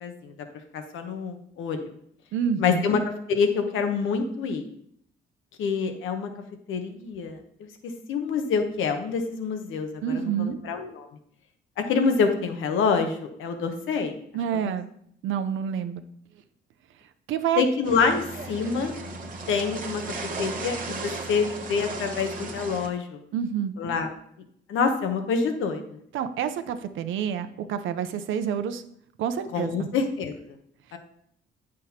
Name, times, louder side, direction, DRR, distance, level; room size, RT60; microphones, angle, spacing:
voice 1, 0.0-0.3 0.7-1.8 2.6-3.0 3.3-4.6 5.6-6.3 6.7-7.4 8.1-11.1 11.8-14.1 17.6-18.9 19.5-23.2 23.8-24.1 24.7-26.0 29.5-30.3 30.9-31.0, left 5 dB, 85° left, 6 dB, 1.0 m, -26 dB
voice 2, 2.3-2.9 10.0-10.6 14.3-14.9 15.2-16.0 17.3-17.6 23.3-23.7 26.1-28.8 29.2-29.9 30.9-31.0, right 8 dB, 80° right, 10 dB, 0.7 m, -28 dB
sound 1, 17.8-22.9, right 3 dB, 45° right, 1.2 m, -35 dB
9.2 x 6.3 x 2.9 m, 0.69 s
cardioid pair, 90°, 20 cm